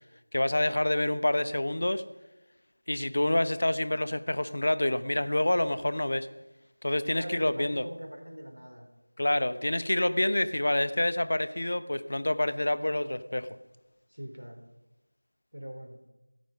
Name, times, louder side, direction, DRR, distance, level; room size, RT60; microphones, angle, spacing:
voice 1, 0.3-2.0 2.9-6.3 6.8-7.8 9.2-13.5, left 1 dB, 45° left, 13 dB, 0.9 m, -27 dB
voice 2, 7.1-8.9 14.1-14.6 15.5-16.0, equal, 85° right, 4 dB, 3.7 m, -42 dB
17.0 x 14.5 x 5.3 m, 1.0 s
figure-of-eight pair, 175°, 0 cm